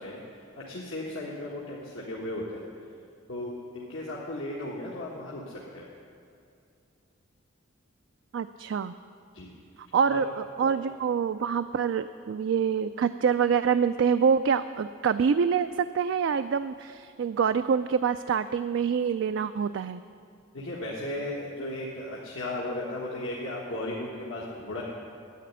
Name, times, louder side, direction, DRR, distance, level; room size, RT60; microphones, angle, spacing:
voice 1, 0.0-2.6 3.3-5.9 9.3-9.5 10.1-10.2 10.6-10.7 20.5-24.8, left 1 dB, 80° left, -5 dB, 1.6 m, -36 dB
voice 2, 8.3-8.9 9.8-20.0, right 6 dB, 65° right, 10 dB, 0.3 m, -26 dB
10.0 x 8.2 x 9.9 m, 2.5 s
head